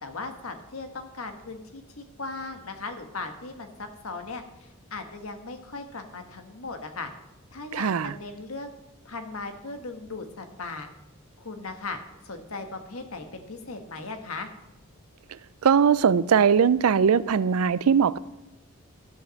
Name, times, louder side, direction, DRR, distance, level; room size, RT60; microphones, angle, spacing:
voice 1, 0.0-7.1 7.5-8.7 9.0-10.9 11.4-12.0 12.2-14.5, left 3 dB, 85° left, 1.4 m, -38 dB
voice 2, 7.7-8.1 15.6-18.2, right 7 dB, 90° right, 0.4 m, -20 dB
12.0 x 5.9 x 6.4 m
head